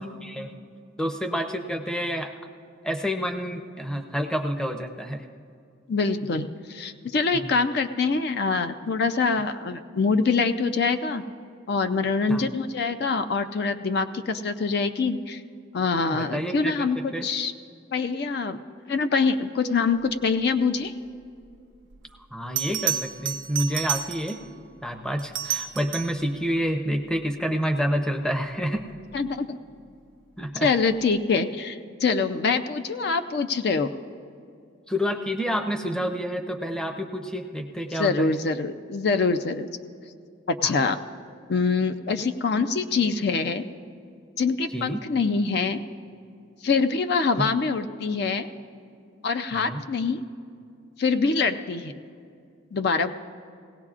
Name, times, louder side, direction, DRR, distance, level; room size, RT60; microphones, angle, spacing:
voice 1, 0.2-0.5 1.0-2.3 2.8-5.2 7.3-7.5 12.3-12.4 16.1-16.8 17.1-17.2 22.3-24.4 24.8-28.8 30.4-30.7 34.9-38.3 40.6-40.8 44.7-45.0 49.5-49.8, equal, 5° left, 4 dB, 0.6 m, -28 dB
voice 2, 5.9-11.2 11.7-15.4 15.7-17.5 17.9-18.6 18.9-20.9 29.1-29.6 30.6-33.9 37.9-39.7 40.5-41.0 41.5-43.6 44.4-45.8 46.6-48.5 49.2-50.2 51.0-51.9 52.7-53.1, left 4 dB, 55° left, 8 dB, 0.4 m, -24 dB
Bell, 21.9-22.0 22.6-24.5 25.2-26.3 28.9-29.2, right 10 dB, 85° right, 0.6 m, -30 dB
19.0 x 17.0 x 2.4 m, 2.4 s
head